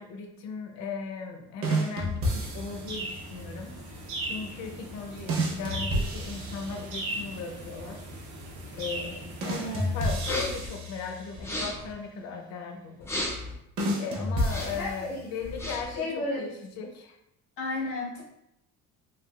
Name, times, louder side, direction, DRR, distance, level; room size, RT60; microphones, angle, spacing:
voice 1, 0.0-8.0 8.7-13.1 14.0-17.2, left 5 dB, 65° left, 4 dB, 0.5 m, -38 dB
sound 1, 1.6-3.0 5.3-7.3 9.4-11.6 13.8-15.4, equal, 50° right, 0.7 m, -31 dB
sound 2, 2.2-10.3, right 2 dB, 85° right, 0.9 m, -39 dB
voice 2, 9.4-10.0 14.8-15.3 16.0-16.5 17.6-18.2, left 2 dB, 85° left, -4 dB, 1.0 m, -33 dB
sound 3, 10.2-10.7 11.3-11.9 13.0-13.6 14.4-14.9 15.4-16.0, left 1 dB, 10° left, 0.3 m, -34 dB
3.4 x 2.4 x 2.2 m, 0.83 s
cardioid pair, 160°, 29 cm